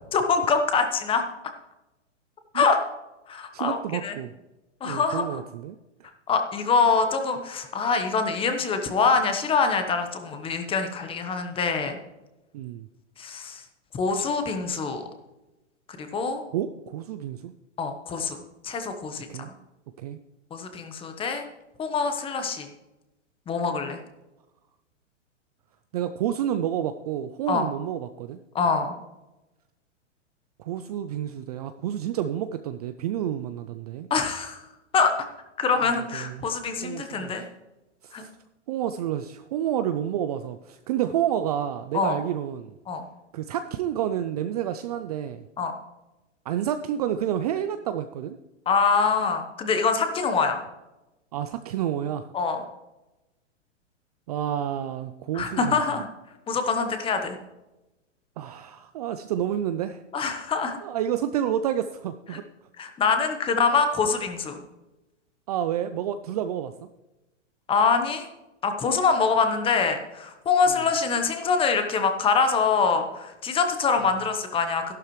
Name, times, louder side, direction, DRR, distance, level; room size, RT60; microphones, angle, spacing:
voice 1, 0.1-1.2 2.5-2.8 3.3-4.1 4.8-5.4 6.3-12.0 13.2-13.6 13.9-15.0 16.0-16.4 17.8-18.4 18.6-19.3 20.5-21.4 21.8-22.7 23.5-24.0 27.5-27.7 28.5-28.9 34.1-34.6 34.9-35.1 35.6-37.4 38.1-38.3 41.9-42.2 42.9-43.0 45.6-45.7 48.7-50.6 52.3-52.6 55.3-56.1 56.5-57.4 60.1-60.8 62.3-62.4 62.8-64.6 67.7-68.3 68.6-74.9, left 5 dB, 15° left, 7 dB, 1.0 m, -24 dB
voice 2, 3.5-4.3 4.8-5.8 12.5-12.9 16.5-17.5 19.3-19.5 20.0-20.2 25.9-28.4 30.6-34.1 36.1-36.4 36.8-37.4 38.0-38.3 38.7-42.7 43.3-45.4 46.5-48.4 51.3-52.3 54.3-55.8 58.4-60.0 60.8-62.4 65.5-66.7 70.7-70.8, right 10 dB, 35° right, 10 dB, 0.4 m, -29 dB
12.5 x 12.0 x 3.2 m, 1.0 s
hypercardioid pair, 140°, 37 cm